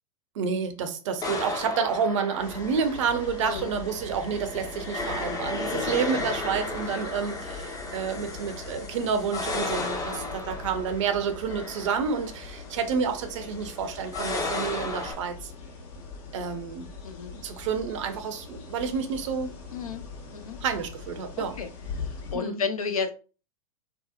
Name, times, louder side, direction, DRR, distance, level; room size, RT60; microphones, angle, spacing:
voice 1, 0.3-15.5 16.3-16.9 17.3-19.5 20.6-21.6 22.3-22.6, right 6 dB, 55° right, 0.5 m, -29 dB
sound 1, 1.2-15.1, left 3 dB, 20° left, 0.5 m, -35 dB
sound 2, 2.4-22.4, left 4 dB, 50° left, 0.8 m, -42 dB
voice 2, 3.4-3.7 5.7-6.0 6.7-7.0 10.1-10.4 17.0-17.3 19.7-20.6 21.4-21.7 22.0-23.1, left 5 dB, 75° left, 0.5 m, -33 dB
2.7 x 2.0 x 2.4 m
figure-of-eight pair, 95°, 18 cm